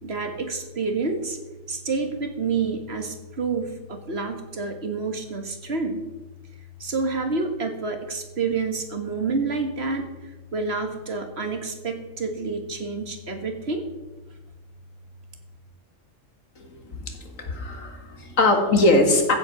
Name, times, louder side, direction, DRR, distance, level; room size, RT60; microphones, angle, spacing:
voice 1, 0.0-1.4 1.7-6.1 6.8-10.1 10.5-13.8, right 4 dB, 55° right, 6 dB, 1.8 m, -28 dB
voice 2, 16.6-19.3, left 2 dB, 90° left, 4 dB, 2.3 m, -22 dB
14.5 x 8.1 x 6.0 m, 1.1 s
omnidirectional pair, 1.3 m